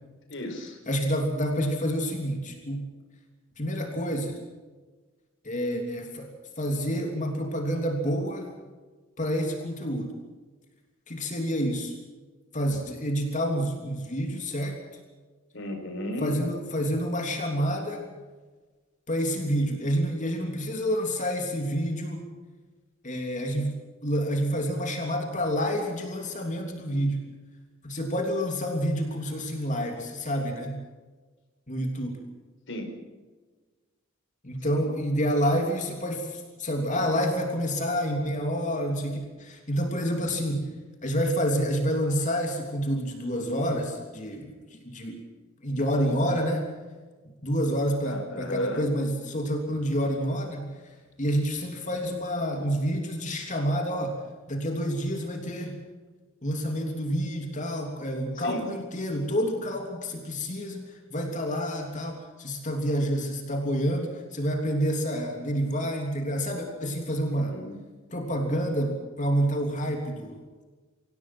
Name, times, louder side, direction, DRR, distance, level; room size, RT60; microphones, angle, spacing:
voice 1, 0.3-0.8 15.5-16.4 32.7-32.9 34.7-34.9 48.0-48.8 58.4-58.7 67.3-67.8, left 1 dB, 60° left, 4 dB, 5.2 m, -34 dB
voice 2, 0.9-2.8 3.6-4.3 5.4-6.3 6.6-8.5 9.2-10.1 11.1-11.9 12.5-14.8 16.2-18.0 19.1-22.3 23.0-23.7 24.0-27.2 27.8-30.8 31.7-32.2 34.4-40.7 41.0-45.2 45.6-46.7 47.4-50.6 51.2-54.2 54.5-55.8 56.4-60.8 61.1-67.5 68.1-70.4, equal, 35° left, 2 dB, 3.2 m, -28 dB
26.0 x 17.0 x 6.2 m, 1.3 s
head